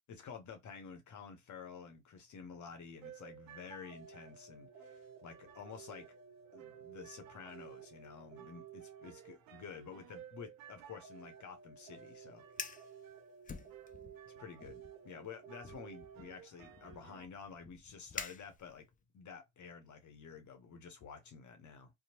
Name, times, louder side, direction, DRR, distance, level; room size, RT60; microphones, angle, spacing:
voice 1, 0.1-6.1 6.5-12.4 14.2-18.8 19.1-21.9, left 6 dB, 55° left, 0.7 m, -51 dB
sound 1, 3.0-17.3, right 8 dB, 75° right, 0.6 m, -54 dB
Fire, 12.4-12.9 13.4-14.2 14.6-14.9 15.6-19.0, left 5 dB, 25° left, 0.5 m, -47 dB
2.8 x 2.0 x 2.8 m
hypercardioid pair, 45°, 34 cm